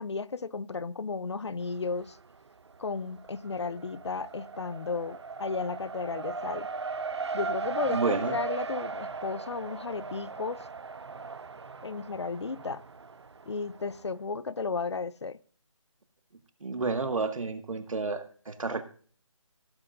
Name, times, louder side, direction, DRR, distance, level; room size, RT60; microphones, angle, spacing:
voice 1, 0.0-2.2 2.8-6.7 7.3-10.7 11.8-12.8 13.5-15.4, left 4 dB, 55° left, 0.6 m, -34 dB
Race car auto racing, 1.6-2.4 2.7-14.0, right 4 dB, 55° right, 0.5 m, -38 dB
voice 2, 7.9-8.4 16.6-18.8, right 4 dB, 80° right, 1.8 m, -30 dB
17.0 x 8.0 x 2.6 m
hypercardioid pair, 180°, 17 cm